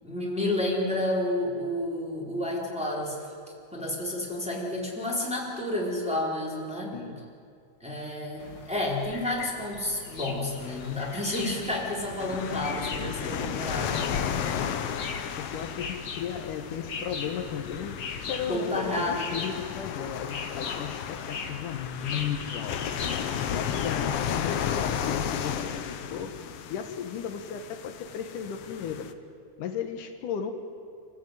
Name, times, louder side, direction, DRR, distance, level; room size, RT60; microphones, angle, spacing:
voice 1, 0.0-3.3 3.7-7.0 7.8-14.0 18.5-19.4, left 1 dB, ahead, -4 dB, 4.2 m, -30 dB
voice 2, 6.9-7.2 15.4-22.9 23.5-26.3 26.7-29.1 29.6-30.5, left 8 dB, 80° left, 6 dB, 2.9 m, -35 dB
sound 1, 8.4-24.0, left 4 dB, 40° left, 1.5 m, -40 dB
sound 2, 10.6-29.1, left 8 dB, 65° left, 1.7 m, -34 dB
27.5 x 15.0 x 9.3 m, 2.4 s
omnidirectional pair, 3.6 m